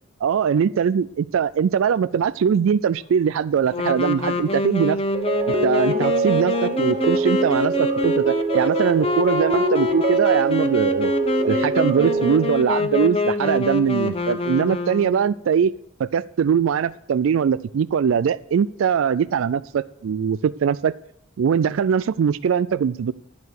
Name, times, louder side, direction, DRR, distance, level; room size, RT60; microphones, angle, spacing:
voice 1, 0.2-5.0 5.5-11.1 11.4-20.9 21.4-23.1, right 7 dB, 80° right, 16 dB, 0.3 m, -21 dB
Wind instrument woodwind instrument, 3.7-15.4, left 2 dB, 30° left, 0.9 m, -25 dB
sound 1, 5.1-12.5, right 3 dB, 35° right, 1.1 m, -24 dB
11.0 x 9.7 x 6.4 m, 0.77 s
head